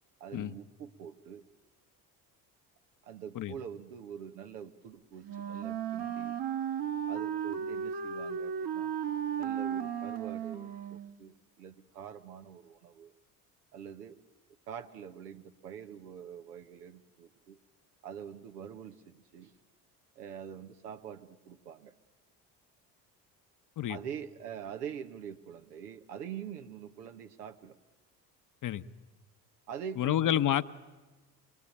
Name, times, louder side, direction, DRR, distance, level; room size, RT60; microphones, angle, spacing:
voice 1, 0.2-1.4 3.0-6.4 7.1-8.9 9.4-13.1 13.7-14.2 14.7-17.6 18.0-19.5 20.1-21.9 23.9-27.8 29.7-30.4, right 8 dB, 85° right, 7 dB, 1.2 m, -45 dB
Wind instrument woodwind instrument, 5.2-11.2, right 8 dB, 55° right, 1.7 m, -35 dB
voice 2, 30.0-30.6, left 11 dB, 40° left, 12 dB, 0.9 m, -28 dB
24.0 x 22.0 x 8.6 m, 1.2 s
hypercardioid pair, 60°, 46 cm